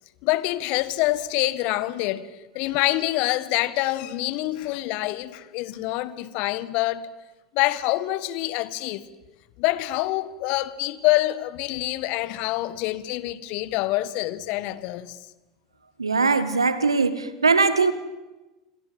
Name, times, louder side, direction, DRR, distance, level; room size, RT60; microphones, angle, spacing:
voice 1, 0.2-2.3 2.5-7.1 7.5-9.1 9.6-15.2, left 17 dB, 55° left, 1.6 m, -26 dB
voice 2, 16.0-17.9, right 4 dB, 85° right, 1.8 m, -21 dB
28.5 x 25.5 x 7.6 m
figure-of-eight pair, 75°, 3 cm